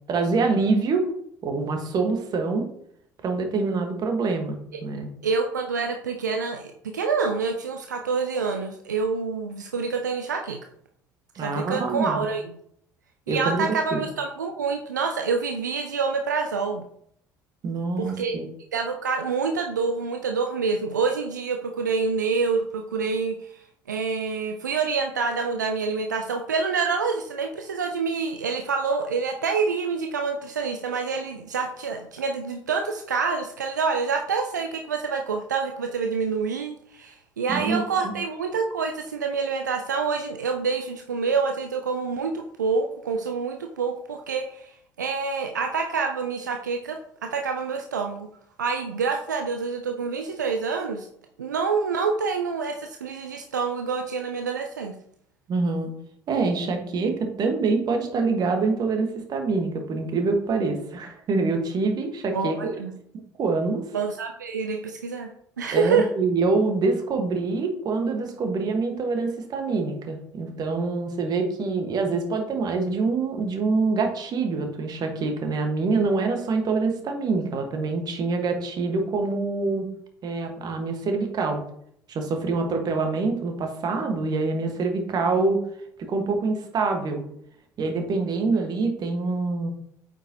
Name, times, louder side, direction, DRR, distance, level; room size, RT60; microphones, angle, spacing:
voice 1, 0.1-1.1 1.4-2.6 3.2-5.1 11.3-12.2 13.3-13.6 13.9-14.0 17.6-18.5 37.5-38.1 55.5-55.9 56.3-62.7 63.4-63.8 65.7-79.9 80.2-81.6 82.1-85.6 86.1-87.2 87.8-89.7, right 3 dB, 45° right, 4 dB, 1.5 m, -25 dB
voice 2, 5.2-10.6 11.4-12.5 13.3-16.8 18.0-18.4 18.7-44.7 45.0-48.3 48.6-51.1 51.4-54.9 62.3-62.9 63.9-65.3 65.6-66.1, right 5 dB, 85° right, 4 dB, 0.5 m, -27 dB
8.6 x 5.3 x 2.9 m, 0.70 s
figure-of-eight pair, 55°, 9 cm